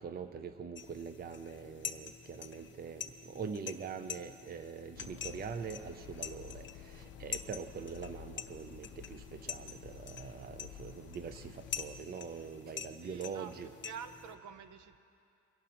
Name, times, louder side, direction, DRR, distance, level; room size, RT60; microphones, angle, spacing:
voice 1, 0.0-13.7, right 6 dB, 30° right, 9 dB, 0.5 m, -43 dB
sound 1, 0.8-14.4, left 7 dB, 40° left, 0.6 m, -46 dB
sound 2, 5.0-12.0, left 12 dB, 80° left, 0.5 m, -52 dB
voice 2, 13.0-15.0, right 7 dB, 70° right, 9 dB, 0.8 m, -48 dB
23.5 x 11.5 x 3.0 m, 2.5 s
cardioid pair, 90°, 30 cm